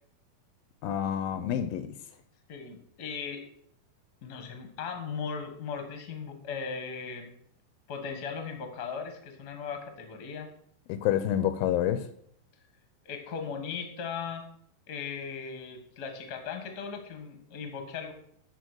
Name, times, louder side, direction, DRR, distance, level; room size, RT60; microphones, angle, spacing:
voice 1, 0.8-1.9 10.9-12.0, left 10 dB, 80° left, 2.3 m, -28 dB
voice 2, 2.5-3.4 4.2-7.3 7.9-10.5 13.0-14.4 14.9-18.1, left 6 dB, 45° left, 1.2 m, -38 dB
12.5 x 4.9 x 6.3 m
omnidirectional pair, 4.4 m